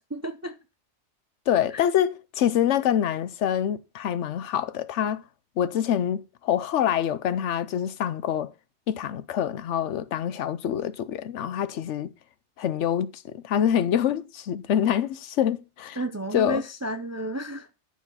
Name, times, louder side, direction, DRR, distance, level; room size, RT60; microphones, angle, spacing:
voice 1, 0.1-0.6 1.7-1.9 16.0-17.7, right 1 dB, 30° right, 0.3 m, -32 dB
voice 2, 1.5-5.2 5.6-8.5 8.9-12.1 12.6-16.0 16.3-16.6, left 10 dB, 85° left, 1.0 m, -26 dB
11.0 x 4.6 x 5.6 m
omnidirectional pair, 1.2 m